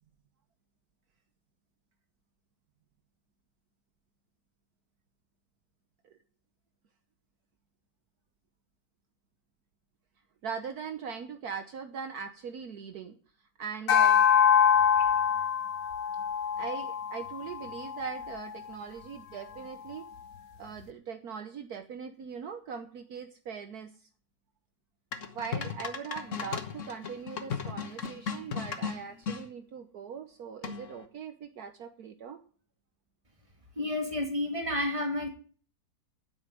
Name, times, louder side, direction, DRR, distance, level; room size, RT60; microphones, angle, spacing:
voice 1, 10.4-13.2 13.6-14.3 16.6-20.0 20.6-24.1 25.3-32.4, right 6 dB, 65° right, 8 dB, 1.4 m, -40 dB
sound 1, 13.9-18.5, left 8 dB, 65° left, 1.4 m, -25 dB
sound 2, 25.1-29.4 30.6-31.0, left 6 dB, 50° left, 1.5 m, -36 dB
voice 2, 33.8-35.3, left 1 dB, 20° right, 3 dB, 2.6 m, -30 dB
9.6 x 7.9 x 9.2 m, 0.43 s
omnidirectional pair, 1.8 m